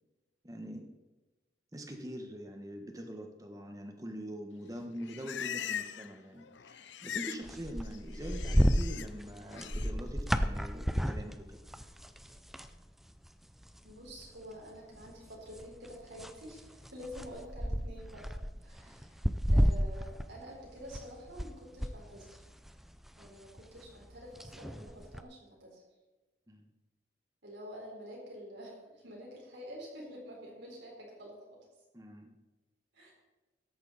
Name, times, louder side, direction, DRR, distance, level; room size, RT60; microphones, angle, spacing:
voice 1, 0.4-0.9 1.7-11.6 26.5-26.7 31.9-32.3, equal, 20° right, 4 dB, 1.4 m, -43 dB
Livestock farm animals working animals, 4.7-6.2 6.4-7.5 7.7-9.1 9.5-9.9, left 9 dB, 75° left, 0.5 m, -41 dB
sound 1, 7.4-12.8 13.1-13.3 13.6-14.4 15.0-21.5 21.8-25.2, equal, ahead, 0.5 m, -32 dB
voice 2, 13.8-18.3 18.6-22.4 23.1-25.8 27.4-31.6 32.9-33.1, equal, 75° right, -3 dB, 4.4 m, -48 dB
13.5 x 10.5 x 4.2 m, 1.1 s
head